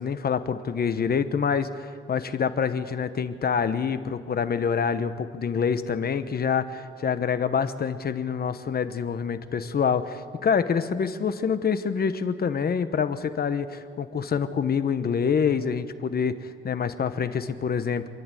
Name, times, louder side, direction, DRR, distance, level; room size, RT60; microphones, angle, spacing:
voice 1, 0.0-18.1, left 6 dB, 50° left, 11 dB, 1.1 m, -26 dB
27.5 x 11.0 x 9.1 m, 2.3 s
cardioid pair, 110°, 21 cm